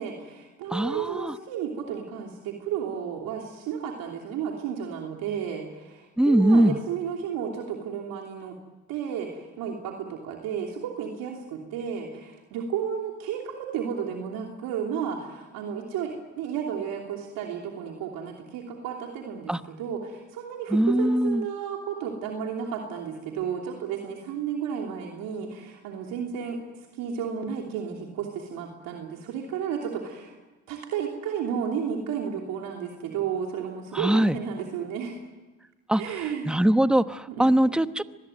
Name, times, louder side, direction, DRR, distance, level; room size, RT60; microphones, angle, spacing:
voice 1, 0.0-8.6 8.9-26.6 26.9-30.4 30.7-35.2 36.0-36.6 37.3-37.8, right 7 dB, 80° right, 1 dB, 3.1 m, -33 dB
voice 2, 0.7-1.3 6.2-6.8 19.5-19.6 20.7-21.4 33.9-34.4 35.9-36.0 36.5-38.0, right 1 dB, ahead, 12 dB, 1.0 m, -21 dB
25.0 x 20.5 x 9.2 m, 1.2 s
supercardioid pair, 70°, 35 cm